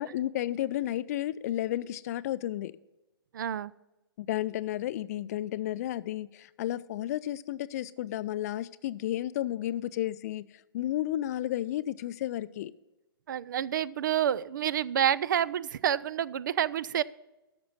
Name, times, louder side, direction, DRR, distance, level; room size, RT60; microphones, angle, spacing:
voice 1, 0.0-2.7 4.2-10.5 10.7-12.7, left 13 dB, 45° left, 0.5 m, -32 dB
voice 2, 3.3-3.7 13.3-17.0, right 10 dB, 55° right, 0.4 m, -28 dB
13.5 x 6.1 x 5.5 m
figure-of-eight pair, 115°, 12 cm